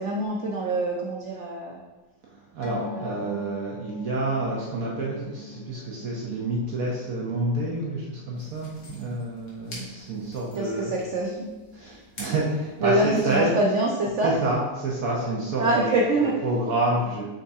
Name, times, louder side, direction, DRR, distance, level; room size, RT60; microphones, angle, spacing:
voice 1, 0.0-1.8 2.9-3.3 10.6-11.5 11.8-12.0 12.8-14.3 15.6-16.4, right 2 dB, 85° right, -2 dB, 0.6 m, -25 dB
voice 2, 2.2-10.9 11.7-13.5 14.2-17.2, right 2 dB, 60° right, -4 dB, 1.1 m, -28 dB
sound 1, 2.6-9.4 9.7-9.9 10.3-10.4, left 4 dB, 65° left, 0.6 m, -44 dB
sound 2, 8.3-13.4, left 1 dB, 90° left, 1.9 m, -47 dB
5.4 x 3.5 x 2.7 m, 1.2 s
omnidirectional pair, 1.9 m